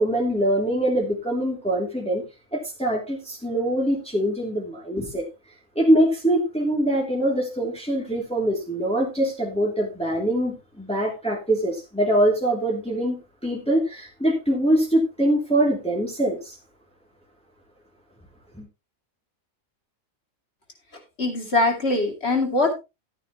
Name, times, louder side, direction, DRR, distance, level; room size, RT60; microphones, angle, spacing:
voice 1, 0.0-2.2 2.5-5.2 5.7-16.6 18.5-18.7, right 1 dB, 5° left, 2.9 m, -23 dB
voice 2, 21.2-22.7, left 2 dB, 45° left, 3.1 m, -22 dB
14.0 x 9.1 x 3.0 m
omnidirectional pair, 1.5 m